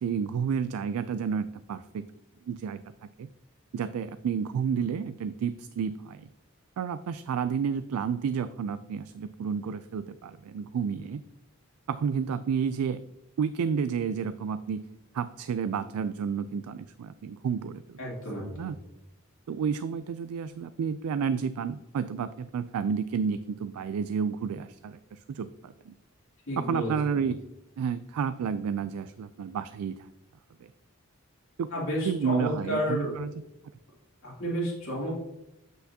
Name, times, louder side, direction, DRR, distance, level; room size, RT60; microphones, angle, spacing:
voice 1, 0.0-2.1 2.5-2.8 3.2-3.3 3.7-6.3 6.8-11.2 11.9-13.0 13.4-14.9 15.1-18.0 18.4-18.8 19.5-25.9 26.6-27.4 27.8-30.1 31.6-31.7 32.0-33.3, right 6 dB, 85° right, 12 dB, 0.3 m, -31 dB
voice 2, 18.0-18.7 26.5-27.3 31.7-33.1 34.2-35.1, equal, 65° left, -5 dB, 2.7 m, -31 dB
8.0 x 5.9 x 2.8 m, 0.88 s
head